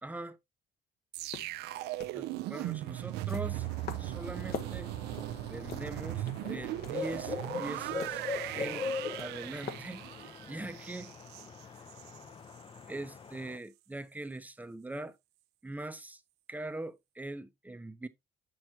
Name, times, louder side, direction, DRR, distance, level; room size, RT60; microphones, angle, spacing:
voice 1, 0.0-0.4 2.1-3.7 4.0-4.9 5.5-8.2 8.5-8.9 9.2-11.1 12.9-15.2 15.6-16.2 16.5-18.1, right 1 dB, 10° right, 0.7 m, -42 dB
sound 1, 1.1-12.2 12.6-12.8, right 16 dB, 85° right, 0.5 m, -38 dB
sound 2, 1.2-10.4, left 7 dB, 65° left, 1.3 m, -47 dB
sound 3, 3.5-13.6, left 5 dB, 30° left, 0.6 m, -42 dB
6.7 x 6.2 x 2.8 m
cardioid pair, 110°, 17 cm